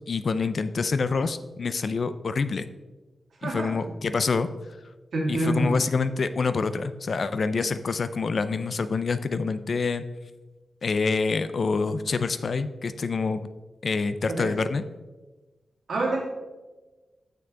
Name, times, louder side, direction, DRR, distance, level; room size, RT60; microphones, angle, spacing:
voice 1, 0.1-2.7 3.4-4.5 5.3-10.0 10.8-13.5 13.8-14.8, left 4 dB, 50° left, 12 dB, 0.3 m, -26 dB
voice 2, 3.4-3.7 5.1-5.8 14.3-14.5 15.9-16.3, right 1 dB, 65° right, -2 dB, 2.1 m, -26 dB
6.9 x 6.5 x 3.7 m, 1.2 s
wide cardioid pair, 155°, 0 cm